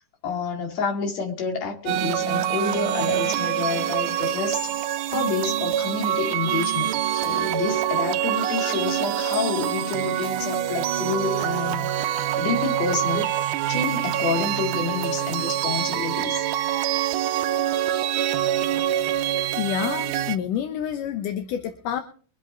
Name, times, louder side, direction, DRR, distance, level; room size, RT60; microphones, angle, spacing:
voice 1, 0.2-4.6 5.1-13.3 13.7-16.5, left 5 dB, 55° left, 2 dB, 3.4 m, -29 dB
sound 1, 1.9-20.4, right 11 dB, 75° right, 2.2 m, -25 dB
voice 2, 19.6-22.0, left 9 dB, 80° left, 7 dB, 2.5 m, -28 dB
23.0 x 8.2 x 4.4 m, 0.42 s
omnidirectional pair, 3.7 m